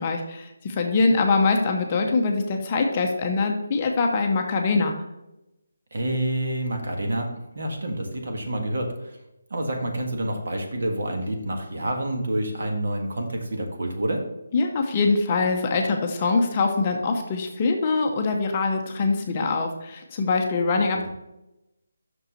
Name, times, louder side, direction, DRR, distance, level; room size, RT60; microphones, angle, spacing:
voice 1, 0.0-4.9 14.5-21.1, left 3 dB, 20° left, 2 dB, 0.7 m, -23 dB
voice 2, 5.9-7.3 7.5-9.2 9.5-14.2, right 1 dB, 55° right, 3 dB, 1.6 m, -28 dB
6.1 x 5.4 x 5.5 m, 0.93 s
hypercardioid pair, 175°, 0 cm